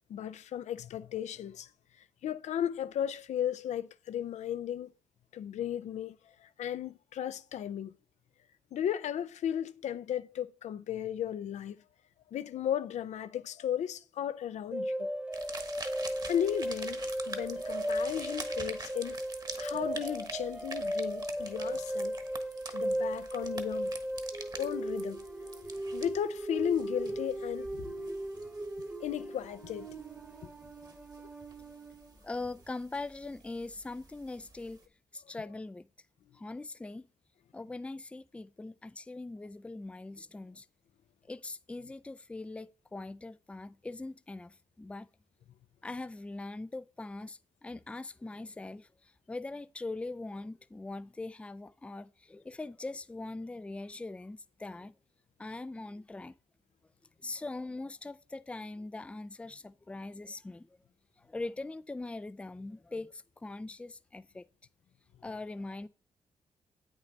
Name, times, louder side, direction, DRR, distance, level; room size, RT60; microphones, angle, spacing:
voice 1, 0.1-1.7 2.2-4.9 5.3-7.9 8.7-11.8 12.3-15.1 15.7-15.9 16.3-19.2 19.6-22.1 22.7-23.9 24.5-25.2 25.9-27.8 29.0-29.9 30.4-30.5, left 10 dB, 75° left, 0.5 m, -35 dB
sound 1, 14.7-32.1, right 1 dB, 10° right, 1.0 m, -36 dB
sound 2, 15.3-34.9, right 3 dB, 35° right, 1.3 m, -47 dB
voice 2, 32.2-34.8 35.1-35.9 36.3-37.1 37.5-40.7 41.3-45.1 45.8-54.9 55.4-56.4 57.2-60.7 61.2-64.5 65.2-65.9, left 2 dB, 10° left, 0.4 m, -41 dB
8.2 x 6.1 x 4.0 m
cardioid pair, 70°, 12 cm